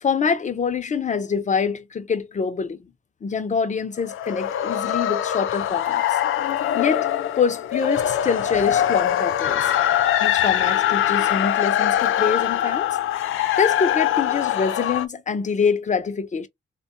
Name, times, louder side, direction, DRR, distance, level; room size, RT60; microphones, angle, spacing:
voice 1, 0.0-2.8 3.2-6.2 6.7-7.1 7.4-9.7 10.2-12.9 13.2-16.5, left 6 dB, 35° left, 0.7 m, -25 dB
sound 1, 4.0-15.1, left 11 dB, 75° left, 0.5 m, -22 dB
3.4 x 2.3 x 4.3 m
cardioid pair, 115°, 21 cm